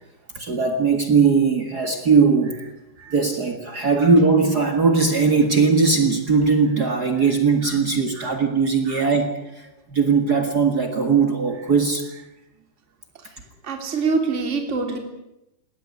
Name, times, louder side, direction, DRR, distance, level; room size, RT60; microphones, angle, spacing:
voice 1, 0.3-2.6 3.1-12.0, right 5 dB, 55° right, 5 dB, 1.0 m, -19 dB
voice 2, 13.6-15.0, right 4 dB, 20° right, 4 dB, 3.0 m, -25 dB
19.0 x 18.5 x 9.6 m, 0.89 s
omnidirectional pair, 4.8 m